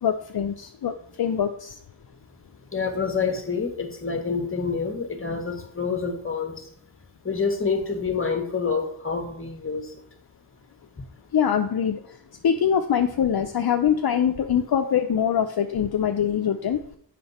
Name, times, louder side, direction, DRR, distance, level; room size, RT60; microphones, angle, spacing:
voice 1, 0.0-1.8 11.3-12.0 12.4-16.8, left 8 dB, 60° left, 6 dB, 0.6 m, -23 dB
voice 2, 2.7-6.7 7.2-9.9 12.7-12.8, left 5 dB, 30° left, 5 dB, 1.5 m, -27 dB
7.7 x 5.7 x 4.2 m, 0.66 s
wide cardioid pair, 65°, 43 cm